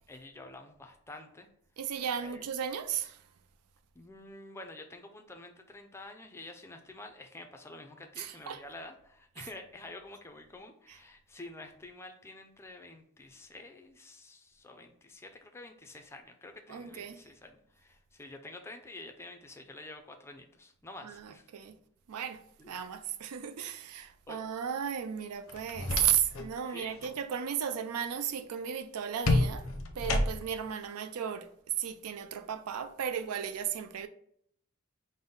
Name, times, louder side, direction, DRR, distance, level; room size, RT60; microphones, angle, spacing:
voice 1, 0.0-1.5 2.2-2.4 3.9-21.5 22.6-22.8 24.3-24.4 26.6-27.0, left 2 dB, 10° left, 0.4 m, -48 dB
voice 2, 1.8-3.2 8.2-8.6 10.9-11.0 16.7-17.2 21.0-21.7 22.1-29.7 30.0-31.5 31.8-34.1, right 8 dB, 85° right, 0.4 m, -35 dB
sound 1, 25.5-26.5 26.8-27.2 29.2-30.7, left 2 dB, 65° left, 0.5 m, -30 dB
5.2 x 2.1 x 3.8 m
head